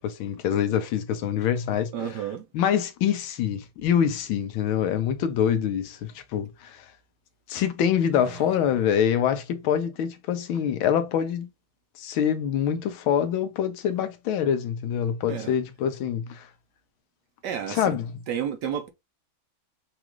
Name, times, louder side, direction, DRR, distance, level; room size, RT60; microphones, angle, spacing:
voice 1, 0.0-1.9 2.5-6.8 7.5-11.5 12.0-16.5 17.7-18.1, left 9 dB, 85° left, 1.5 m, -25 dB
voice 2, 1.9-2.5 8.2-8.5 15.3-15.5 17.4-18.0 18.3-18.9, right 8 dB, 70° right, 1.2 m, -31 dB
6.0 x 2.5 x 3.0 m
omnidirectional pair, 2.2 m